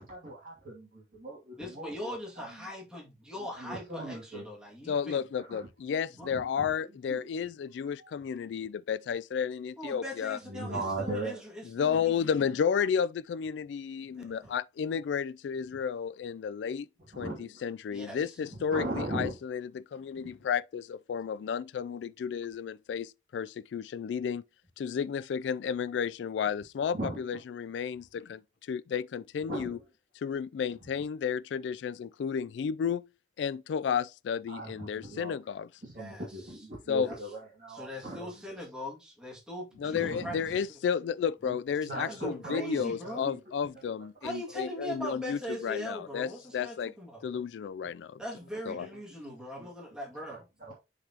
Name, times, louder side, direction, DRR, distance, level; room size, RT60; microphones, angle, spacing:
voice 1, 0.0-2.1 2.4-2.5 3.6-4.5 5.5-5.7 6.3-7.5 8.0-8.1 10.4-11.4 17.1-17.6 18.5-19.4 20.1-20.3 26.9-27.2 29.5-29.8 34.5-35.4 35.8-38.6 39.9-40.6 41.4-41.6 41.8-43.4 47.3-47.4 48.9-49.7 50.3-50.7, right 2 dB, 50° right, 2.3 m, -39 dB
voice 2, 1.6-5.2 6.2-6.3 9.8-12.3 14.2-14.5 17.9-18.4 36.0-36.3 37.0-37.2 37.7-40.7 41.8-43.3 44.2-47.2 48.2-50.4, left 1 dB, 5° right, 2.1 m, -41 dB
voice 3, 4.9-10.4 11.7-16.9 17.2-24.4 24.8-28.4 28.7-29.8 30.2-33.1 33.4-35.7 36.9-37.1 39.8-46.9 47.2-48.2 48.7-48.9, left 7 dB, 90° left, 0.3 m, -32 dB
11.5 x 4.1 x 2.8 m
head